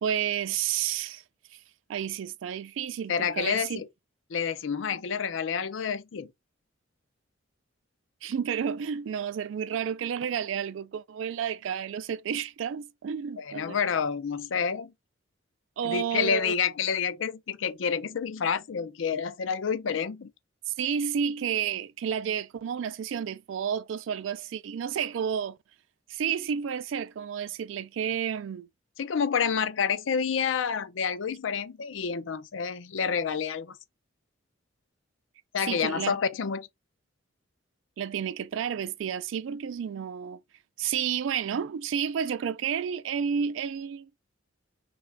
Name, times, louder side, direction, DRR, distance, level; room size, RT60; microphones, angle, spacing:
voice 1, 0.0-1.2 1.9-3.8 8.2-13.9 15.8-16.5 20.7-25.6 26.1-28.7 35.6-36.2 38.0-40.4 40.8-44.1, right 8 dB, 75° right, 0.3 m, -31 dB
voice 2, 3.1-3.9 4.3-6.3 13.4-14.9 15.8-20.3 29.0-33.7 35.5-36.7, left 6 dB, 80° left, 0.5 m, -29 dB
3.2 x 2.3 x 3.2 m
head